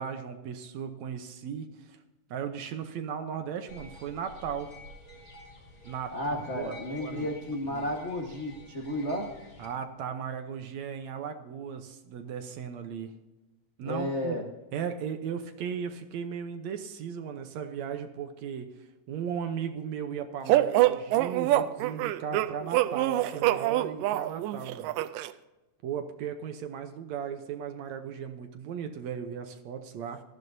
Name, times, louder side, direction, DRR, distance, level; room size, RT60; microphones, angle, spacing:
voice 1, 0.0-2.0 2.3-4.7 5.8-7.3 7.7-7.9 9.6-13.1 13.8-14.4 14.7-24.9 25.8-30.2, right 7 dB, 70° right, 7 dB, 1.9 m, -37 dB
sound 1, 3.7-9.7, left 1 dB, 30° left, 3.8 m, -49 dB
voice 2, 6.1-9.3 13.8-14.4, left 1 dB, 75° left, 0 dB, 0.6 m, -32 dB
sound 2, 20.5-25.3, right 15 dB, 85° right, 2.2 m, -25 dB
18.5 x 14.0 x 2.7 m, 1.1 s
omnidirectional pair, 3.8 m